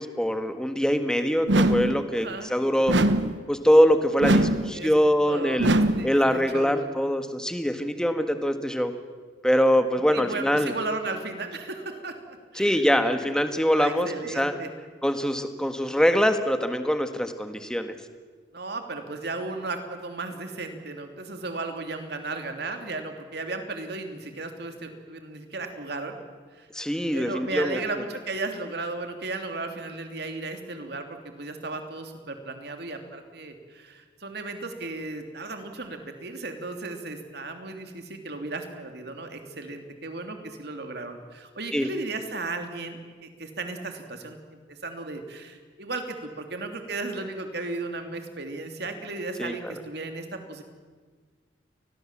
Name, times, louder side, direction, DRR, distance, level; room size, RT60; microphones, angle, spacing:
voice 1, 0.0-3.0 3.5-5.7 6.0-8.9 9.4-10.7 12.6-14.5 15.0-17.9 26.7-27.8 41.7-41.9 49.4-49.5, equal, 5° left, 7 dB, 1.7 m, -23 dB
sound 1, 1.5-2.0 2.9-3.4 4.2-4.7 5.6-6.1, right 1 dB, 80° right, 1.2 m, -22 dB
voice 2, 2.1-2.5 4.7-4.9 5.2-6.9 10.1-12.2 12.5-12.8 13.2-13.4 13.7-14.7 18.5-26.2 26.5-26.7 27.1-50.6, right 3 dB, 60° right, 5 dB, 3.1 m, -35 dB
28.5 x 21.0 x 7.5 m, 1.5 s
head